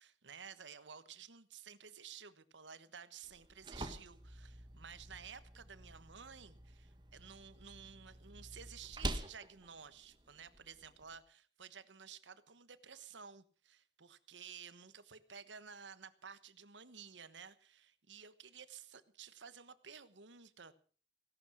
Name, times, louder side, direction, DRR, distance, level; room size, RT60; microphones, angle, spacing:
voice 1, 0.0-20.7, right 7 dB, 85° right, 13 dB, 1.3 m, -54 dB
sound 1, 3.2-11.2, right 1 dB, 25° right, 1.4 m, -47 dB
17.0 x 11.5 x 6.2 m, 0.43 s
head